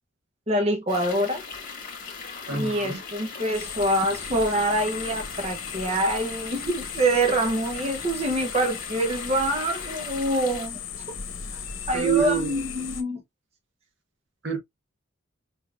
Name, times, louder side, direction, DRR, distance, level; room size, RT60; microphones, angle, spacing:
voice 1, 0.5-1.4 2.5-10.8 11.5-11.6 11.9-13.2, right 1 dB, 30° right, 0.9 m, -25 dB
sound 1, 0.9-10.7, left 5 dB, 45° left, 1.8 m, -39 dB
voice 2, 2.5-3.0 11.9-12.5 14.4-14.6, right 8 dB, 65° right, 1.4 m, -26 dB
sound 2, 3.5-13.0, left 7 dB, 70° left, 1.0 m, -37 dB
5.1 x 3.8 x 2.4 m
head